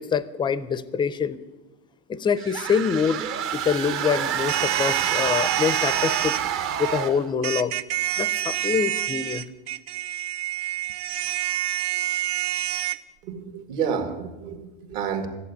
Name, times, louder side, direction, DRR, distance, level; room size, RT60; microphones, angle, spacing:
voice 1, 0.0-1.4 2.1-3.3 3.5-6.3 6.8-7.7 8.2-9.5, left 6 dB, 15° left, 16 dB, 0.4 m, -25 dB
sound 1, 2.4-7.3, right 10 dB, 45° right, 0.9 m, -27 dB
sound 2, 4.5-6.4 7.4-13.0, right 13 dB, 85° right, 0.7 m, -27 dB
voice 2, 13.2-15.3, right 7 dB, 65° right, 7 dB, 2.0 m, -29 dB
14.0 x 8.2 x 9.4 m, 1.1 s
cardioid pair, 150°, 30 cm